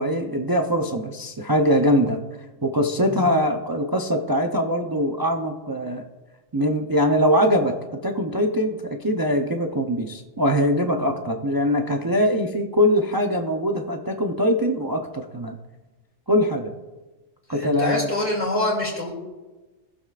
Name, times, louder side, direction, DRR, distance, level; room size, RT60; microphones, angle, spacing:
voice 1, 0.0-2.2 2.6-6.0 6.5-7.7 8.0-15.6 16.3-16.7 17.5-18.1, equal, 25° right, 3 dB, 0.5 m, -22 dB
voice 2, 17.5-19.1, left 1 dB, 10° right, -4 dB, 2.4 m, -25 dB
19.0 x 7.0 x 2.5 m, 1.2 s
omnidirectional pair, 1.3 m